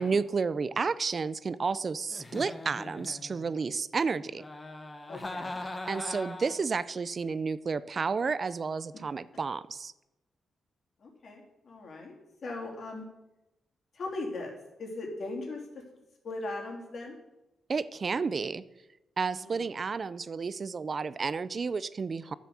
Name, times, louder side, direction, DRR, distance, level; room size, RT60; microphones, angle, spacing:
voice 1, 0.0-4.4 5.9-9.9 17.7-18.6 19.2-22.3, right 5 dB, 40° right, 16 dB, 0.5 m, -31 dB
Giggle, 2.1-3.6 4.3-6.7, left 2 dB, 20° left, 1.3 m, -40 dB
voice 2, 5.1-5.6 8.9-9.0 11.0-12.1 12.4-13.0 13.9-15.6 16.2-17.2 19.4-19.6, left 2 dB, 55° left, 0 dB, 3.2 m, -39 dB
11.0 x 7.4 x 7.1 m, 0.97 s
cardioid pair, 100°, 0 cm